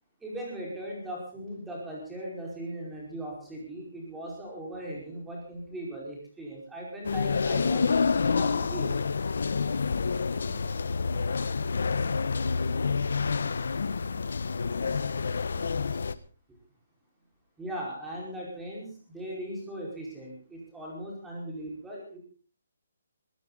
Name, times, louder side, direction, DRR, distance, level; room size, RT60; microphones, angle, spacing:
voice 1, 0.2-7.9 8.2-9.0 17.6-22.2, right 1 dB, 5° right, -3 dB, 5.1 m, -39 dB
sound 1, 7.0-16.1, left 5 dB, 65° left, 1.2 m, -28 dB
voice 2, 9.5-11.9 12.2-14.2 14.7-16.1 21.6-21.7, right 1 dB, 20° right, 0 dB, 5.9 m, -53 dB
22.5 x 14.5 x 4.1 m, 0.39 s
hypercardioid pair, 175°, 0 cm